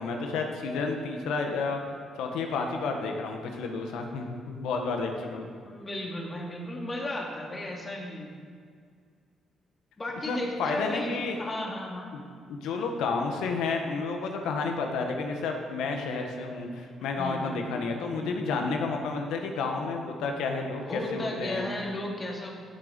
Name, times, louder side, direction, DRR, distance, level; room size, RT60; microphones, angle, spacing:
voice 1, 0.0-1.8 2.2-5.5 10.3-11.4 12.1-12.2 12.5-21.7, left 4 dB, 90° left, 3 dB, 1.5 m, -31 dB
voice 2, 5.6-8.3 10.0-12.1 17.2-18.8 20.8-22.5, left 1 dB, 25° left, -1 dB, 2.6 m, -35 dB
15.5 x 6.8 x 5.3 m, 2.1 s
cardioid pair, 90°, 0 cm